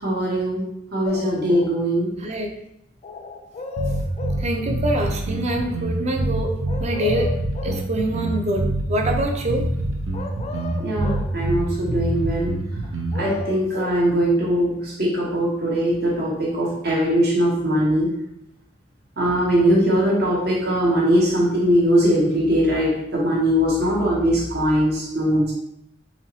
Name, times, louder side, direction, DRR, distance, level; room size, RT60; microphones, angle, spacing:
voice 1, 0.0-0.7 0.9-2.1 10.8-12.5 13.1-18.1 19.2-25.5, equal, 55° right, -4 dB, 1.3 m, -21 dB
sound 1, 1.0-1.8 3.0-4.5 6.7-7.9 10.1-11.3 12.8-14.0, left 4 dB, 35° left, 0.3 m, -34 dB
sound 2, 3.8-13.3, right 1 dB, 85° right, 0.6 m, -25 dB
voice 2, 4.4-6.5 6.8-7.3 7.6-8.6 8.9-9.8, right 1 dB, 35° right, 2 dB, 0.6 m, -25 dB
4.4 x 3.0 x 2.8 m, 0.78 s
head